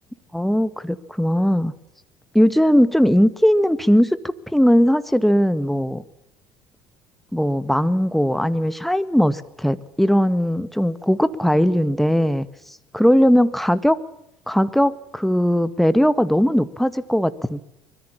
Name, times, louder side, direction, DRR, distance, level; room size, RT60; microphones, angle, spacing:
voice 1, 0.3-1.7 2.3-6.0 7.3-12.5 12.9-14.0 14.5-17.6, equal, ahead, 12 dB, 1.8 m, -19 dB
24.5 x 22.5 x 7.2 m, 0.81 s
hypercardioid pair, 60°, 10 cm